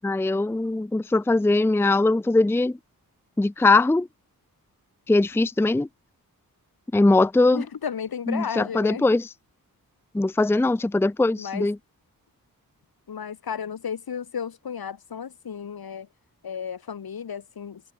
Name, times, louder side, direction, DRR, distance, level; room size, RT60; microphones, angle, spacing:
voice 1, 0.0-2.8 3.4-4.1 5.1-5.9 6.9-7.6 8.3-9.3 10.1-11.8, left 2 dB, 5° left, 0.5 m, -21 dB
voice 2, 7.5-9.1 11.4-11.7 13.1-16.1 16.4-17.9, left 7 dB, 85° left, 6.4 m, -33 dB
cardioid pair, 60°, 36 cm